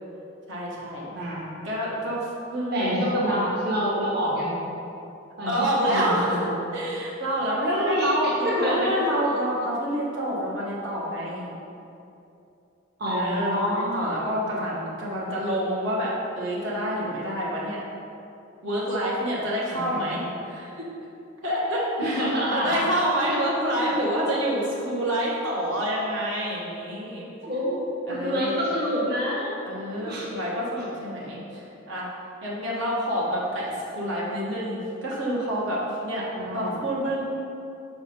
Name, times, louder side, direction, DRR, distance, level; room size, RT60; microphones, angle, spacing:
voice 1, 0.5-1.1 1.6-2.9 5.4-6.4 6.7-11.5 13.1-17.8 18.6-20.2 20.4-20.8 21.4-22.2 22.5-27.3 28.1-28.5 29.6-32.1 32.4-36.2 36.5-37.3, equal, 80° right, -6 dB, 1.4 m, -27 dB
voice 2, 1.1-1.5 2.7-4.5 5.4-6.6 7.6-9.0 13.0-14.1 14.5-14.7 19.7-20.3 22.0-22.9 23.3-23.4 23.8-23.9 27.4-29.5 30.1-30.3 36.4-36.8, equal, 55° right, -6 dB, 1.4 m, -27 dB
7.0 x 4.8 x 4.3 m, 2.7 s
head